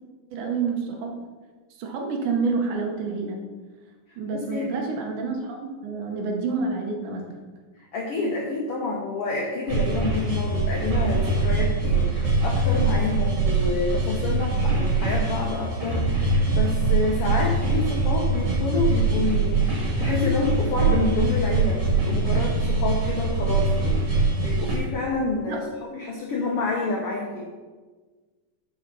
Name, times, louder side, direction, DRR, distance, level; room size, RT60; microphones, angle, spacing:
voice 1, 0.3-1.2 1.8-3.5 4.2-7.3 25.2-25.6, right 4 dB, 70° right, 2 dB, 2.3 m, -28 dB
voice 2, 4.3-4.7 7.8-27.5, left 3 dB, 75° left, -2 dB, 1.3 m, -28 dB
sound 1, 9.7-24.8, right 3 dB, 45° right, 2.7 m, -23 dB
7.4 x 5.6 x 5.3 m, 1.4 s
omnidirectional pair, 4.0 m